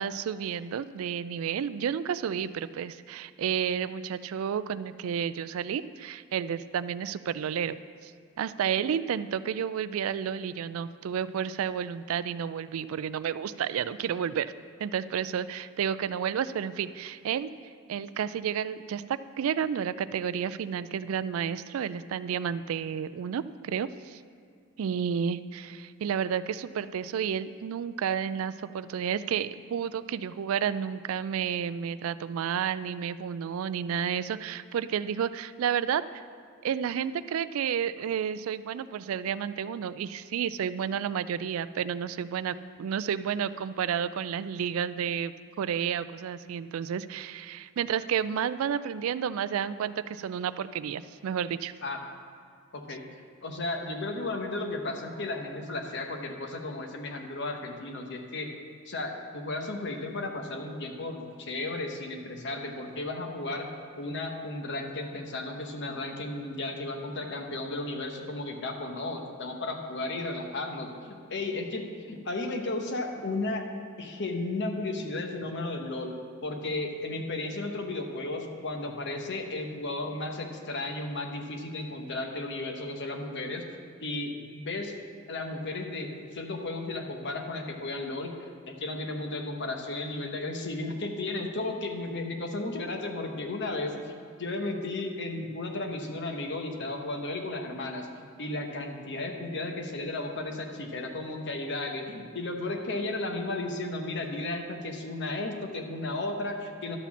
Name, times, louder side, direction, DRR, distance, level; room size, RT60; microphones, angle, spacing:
voice 1, 0.0-8.1 8.4-14.5 14.8-17.5 17.9-24.2 24.8-36.2 36.6-51.7, right 8 dB, 70° right, 15 dB, 0.3 m, -31 dB
voice 2, 52.7-53.0 53.4-58.5 58.9-63.7 64.0-73.7 74.0-76.1 76.4-83.6 84.0-84.9 85.3-94.1 94.4-107.0, left 2 dB, 55° left, 4 dB, 1.0 m, -34 dB
11.5 x 4.2 x 7.1 m, 2.1 s
head